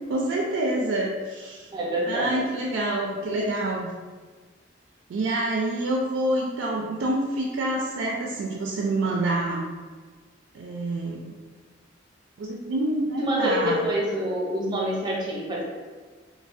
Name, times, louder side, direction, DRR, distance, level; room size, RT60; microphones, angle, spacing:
voice 1, 0.0-1.7 2.1-3.9 5.1-9.6 10.5-11.4 12.4-13.8, right 1 dB, 90° right, -1 dB, 0.3 m, -27 dB
voice 2, 1.7-2.3 13.2-15.6, equal, 25° right, -4 dB, 0.6 m, -26 dB
3.1 x 2.1 x 2.5 m, 1.4 s
head